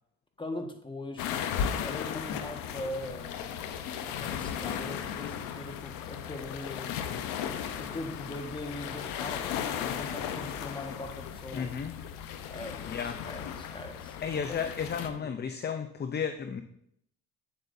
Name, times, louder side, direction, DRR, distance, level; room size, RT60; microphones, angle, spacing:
voice 1, 0.4-1.3 1.8-3.7 4.0-7.2 7.8-11.7 12.5-14.6 15.2-15.3, left 1 dB, 15° left, 5 dB, 1.5 m, -41 dB
sound 1, 1.2-15.1, left 8 dB, 85° left, 0.8 m, -36 dB
voice 2, 11.5-11.9 12.9-13.2 14.2-16.6, left 7 dB, 30° left, 9 dB, 0.6 m, -33 dB
8.7 x 7.9 x 2.7 m, 0.72 s
supercardioid pair, 75°, 32 cm